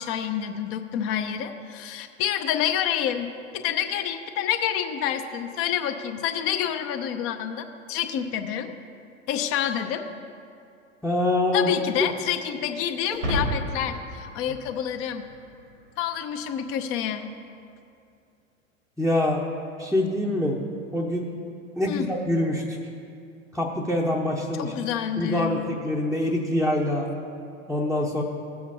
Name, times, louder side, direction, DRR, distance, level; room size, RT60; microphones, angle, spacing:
voice 1, 0.0-3.3 3.5-8.7 9.3-10.1 11.5-15.2 16.0-17.3 21.9-22.1 24.6-25.8, left 9 dB, 35° left, 8 dB, 0.7 m, -28 dB
voice 2, 11.0-11.7 19.0-19.5 19.8-20.6 20.9-21.3 21.8-22.8 23.5-24.7 25.2-27.1 27.7-28.2, left 1 dB, ahead, -4 dB, 0.8 m, -25 dB
sound 1, 13.1-15.6, equal, 80° right, 1.9 m, -31 dB
17.5 x 7.7 x 2.8 m, 2.5 s
figure-of-eight pair, 85°, 39 cm